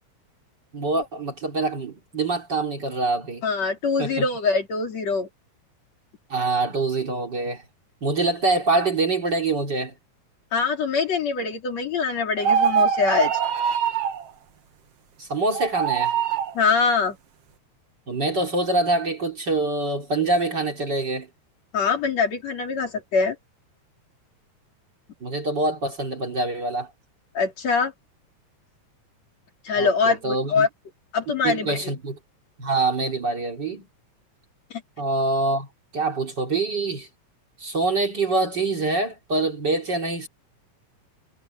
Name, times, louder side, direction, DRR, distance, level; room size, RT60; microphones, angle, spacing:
voice 1, 0.7-3.4 4.0-4.3 6.3-7.6 8.0-9.9 15.2-16.2 18.1-21.3 25.2-26.9 29.7-30.7 31.4-32.2 32.6-33.9 35.0-35.7 35.9-37.1 37.6-40.3, right 3 dB, 35° right, 3.2 m, -25 dB
voice 2, 3.4-5.3 10.5-13.3 16.5-17.2 21.7-23.4 27.3-27.9 29.6-30.7 31.1-31.9 34.7-34.8, left 5 dB, 60° left, 4.5 m, -23 dB
sound 1, 12.4-14.2 15.5-16.5, right 8 dB, 60° right, 2.3 m, -23 dB
omnidirectional pair, 3.4 m